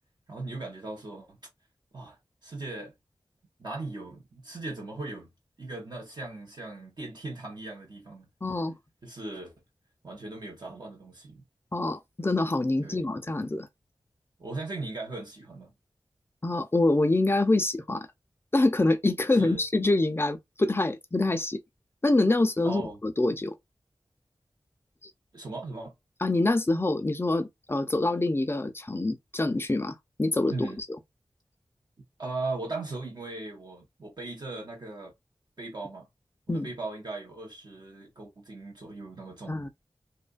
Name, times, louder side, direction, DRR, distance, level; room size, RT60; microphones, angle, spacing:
voice 1, 0.3-1.4 1.9-2.9 3.6-5.3 5.6-8.3 9.0-9.5 10.0-11.4 12.8-13.1 14.4-15.7 19.3-19.6 22.6-23.0 25.3-25.9 30.5-30.8 32.2-35.1 35.6-36.1 36.5-39.6, right 2 dB, 55° right, 0.7 m, -38 dB
voice 2, 8.4-8.7 11.7-13.7 16.4-18.1 18.5-21.6 22.0-23.5 25.0-25.1 26.2-30.8 36.5-36.7 39.5-39.7, left 2 dB, 25° left, 0.4 m, -26 dB
2.6 x 2.2 x 2.4 m
wide cardioid pair, 60°, 9 cm